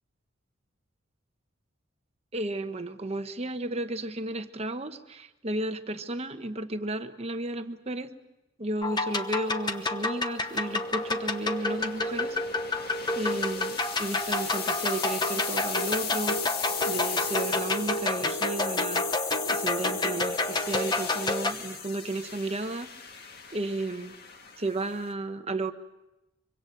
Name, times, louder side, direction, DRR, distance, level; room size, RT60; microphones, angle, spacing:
voice 1, 2.3-8.1 8.6-12.4 13.2-16.4 16.9-19.1 19.5-22.9 23.5-24.1 24.6-25.7, right 2 dB, 30° right, 8 dB, 1.0 m, -33 dB
sound 1, 8.8-21.5, left 2 dB, 20° left, 1.0 m, -29 dB
sound 2, 10.4-25.1, left 6 dB, 50° left, 1.9 m, -37 dB
24.5 x 24.0 x 6.6 m, 0.98 s
head